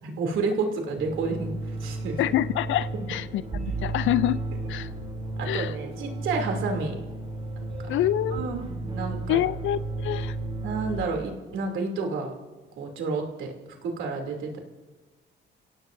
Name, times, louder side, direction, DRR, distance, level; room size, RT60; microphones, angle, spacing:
voice 1, 0.0-2.2 5.4-7.0 8.3-9.4 10.6-12.3 12.8-13.5 13.8-14.6, right 4 dB, 80° right, 2 dB, 2.9 m, -30 dB
sound 1, 1.0-11.0, right 2 dB, 30° right, 3.4 m, -33 dB
voice 2, 2.2-4.4 4.7-4.9 5.5-5.8 7.9-8.5 9.3-10.4, left 13 dB, 80° left, 16 dB, 0.5 m, -26 dB
30.0 x 17.0 x 2.6 m, 1.2 s
cardioid pair, 90°, 20 cm